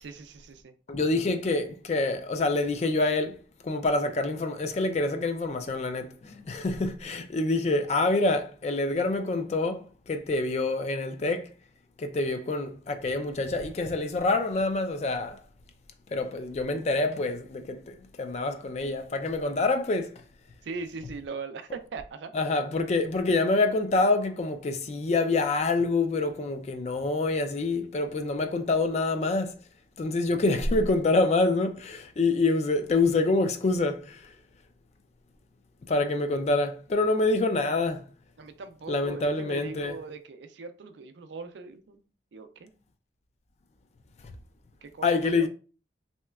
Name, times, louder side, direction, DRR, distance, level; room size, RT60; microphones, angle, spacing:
voice 1, 0.0-0.7 20.6-22.3 38.4-42.0 42.3-42.7 44.8-45.5, right 4 dB, 85° right, 0.4 m, -40 dB
voice 2, 0.9-3.4 3.6-11.5 12.0-15.4 16.1-20.2 22.3-29.6 30.0-34.3 35.9-38.1 38.9-40.0 45.0-45.5, left 2 dB, 40° left, 0.3 m, -26 dB
3.1 x 2.9 x 2.3 m
head